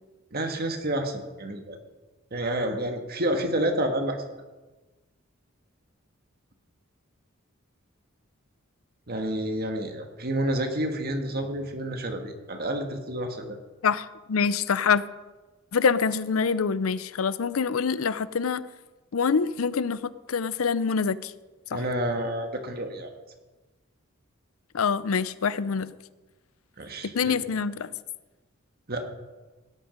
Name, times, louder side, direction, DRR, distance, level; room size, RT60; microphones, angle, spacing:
voice 1, 0.3-1.8 2.3-4.2 9.1-13.6 21.7-23.1 26.8-27.3 28.9-29.1, right 1 dB, 50° right, 5 dB, 1.7 m, -29 dB
voice 2, 13.8-15.0 15.7-18.6 19.1-21.3 21.7-21.8 24.7-25.9 27.0-27.9, left 5 dB, 90° left, 16 dB, 0.6 m, -25 dB
17.0 x 8.8 x 5.2 m, 1.2 s
head